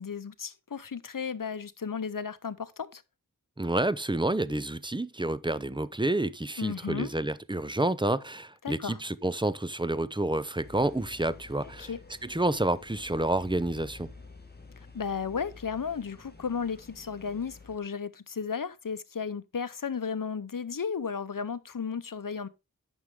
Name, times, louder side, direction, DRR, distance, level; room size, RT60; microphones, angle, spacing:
voice 1, 0.0-3.0 6.6-7.1 8.6-9.0 11.8-12.0 14.8-22.5, left 6 dB, 70° left, 0.7 m, -34 dB
voice 2, 3.6-11.9 12.2-14.1, right 2 dB, 15° right, 0.6 m, -29 dB
sound 1, 10.6-17.8, left 3 dB, 30° left, 1.7 m, -50 dB
9.6 x 6.3 x 3.6 m
wide cardioid pair, 40°, 34 cm